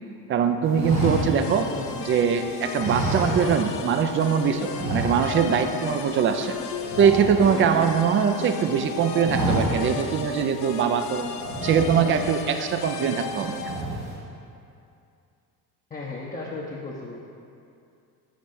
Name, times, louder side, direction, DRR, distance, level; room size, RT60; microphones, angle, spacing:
voice 1, 0.3-1.7 2.1-6.6 7.0-11.3 11.6-13.7, right 7 dB, 30° right, 7 dB, 0.4 m, -22 dB
sound 1, 0.7-2.2 2.7-4.3 4.7-5.6 5.9-6.1 6.4-8.1 8.5-8.8 9.1-10.0 10.4-10.5 11.3-12.4 12.9-13.2 13.5-14.1, right 1 dB, 90° right, 1.4 m, -29 dB
sound 2, 1.0-13.8, left 6 dB, 80° left, 0.6 m, -35 dB
voice 2, 1.7-2.1 15.9-17.2, left 3 dB, 20° left, -5 dB, 0.7 m, -35 dB
5.1 x 5.1 x 4.3 m, 2.5 s
hypercardioid pair, 55°, 46 cm